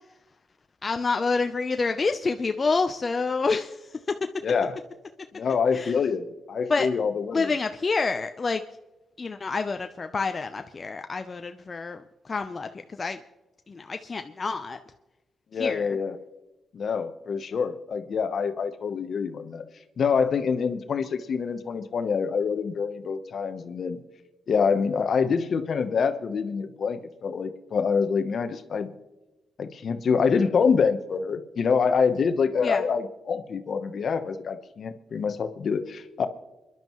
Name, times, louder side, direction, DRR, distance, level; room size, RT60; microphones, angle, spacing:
voice 1, 0.8-4.3 5.7-6.0 6.7-6.9 7.3-8.6 9.2-13.2 13.7-14.8 15.5-16.0 32.6-32.8, left 4 dB, 40° left, 7 dB, 0.7 m, -28 dB
voice 2, 4.4-4.8 5.3-7.4 15.5-16.2 16.7-19.6 20.0-24.0 24.5-28.9 29.6-36.3, left 5 dB, 65° left, 10 dB, 1.0 m, -26 dB
28.5 x 11.0 x 3.1 m, 1.1 s
supercardioid pair, 55°, 0 cm